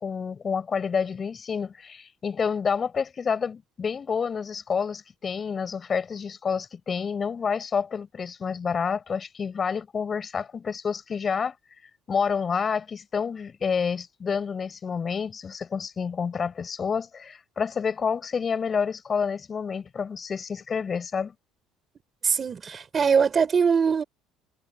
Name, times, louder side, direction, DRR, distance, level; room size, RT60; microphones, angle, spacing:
voice 1, 0.0-11.5 12.1-21.3, left 6 dB, 25° left, 8.0 m, -28 dB
voice 2, 22.2-24.0, right 6 dB, 25° right, 3.9 m, -22 dB
cardioid pair, 145°, 0 cm